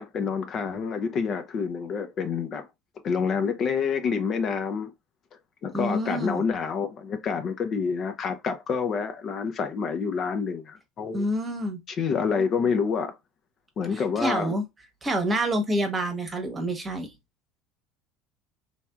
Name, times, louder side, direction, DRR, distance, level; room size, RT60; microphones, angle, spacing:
voice 1, 0.0-2.7 3.0-4.9 5.6-11.3 11.9-13.1 13.8-14.5, left 6 dB, 45° left, 0.5 m, -28 dB
voice 2, 5.7-6.4 11.1-11.8 13.9-14.6 15.0-17.1, right 1 dB, 20° right, 1.0 m, -27 dB
3.2 x 2.6 x 2.3 m
supercardioid pair, 100°, 0 cm